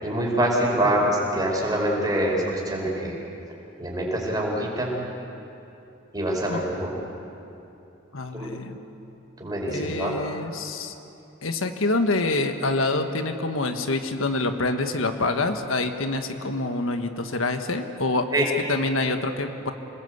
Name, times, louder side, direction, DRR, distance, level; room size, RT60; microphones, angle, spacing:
voice 1, 0.0-3.2 3.8-4.9 6.1-6.9 8.3-8.5 9.4-10.1 18.3-18.4, right 1 dB, 20° right, -2 dB, 5.1 m, -25 dB
voice 2, 8.1-8.8 9.7-10.9 11.4-19.7, left 2 dB, 90° left, 6 dB, 1.5 m, -26 dB
27.0 x 20.0 x 8.1 m, 2.8 s
head